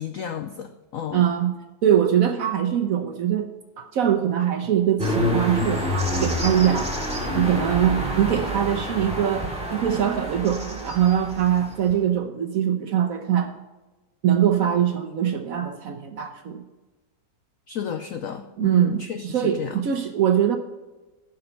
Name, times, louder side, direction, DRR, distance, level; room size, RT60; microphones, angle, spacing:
voice 1, 0.0-1.2 17.7-19.8, left 8 dB, 80° left, 8 dB, 0.7 m, -32 dB
voice 2, 1.1-1.5 1.8-3.5 3.8-6.9 7.3-13.5 14.2-16.6 18.6-20.6, right 10 dB, 65° right, 6 dB, 0.9 m, -22 dB
sound 1, 5.0-11.9, equal, 5° right, 2.2 m, -27 dB
11.0 x 5.4 x 5.4 m, 1.1 s
omnidirectional pair, 2.0 m